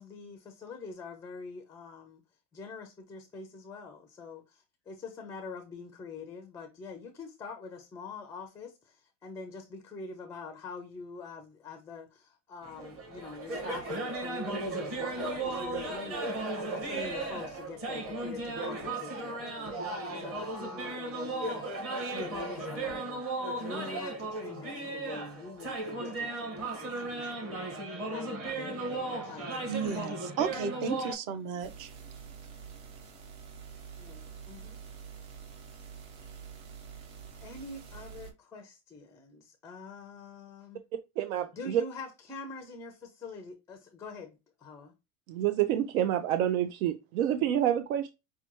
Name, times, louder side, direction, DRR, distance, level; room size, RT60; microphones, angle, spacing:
voice 1, 0.0-2.2 2.5-23.2 23.6-30.1 30.5-30.6 34.0-34.8 37.4-40.8 41.5-44.9, left 4 dB, 10° left, 0.4 m, -45 dB
sound 1, 12.6-31.1, right 2 dB, 35° right, 1.4 m, -36 dB
voice 2, 29.7-31.9, right 6 dB, 50° right, 0.8 m, -33 dB
sound 2, 31.6-38.3, right 7 dB, 65° right, 1.7 m, -47 dB
voice 3, 41.2-41.8 45.3-48.1, right 11 dB, 85° right, 0.6 m, -28 dB
5.7 x 2.2 x 3.0 m
supercardioid pair, 140°, 41 cm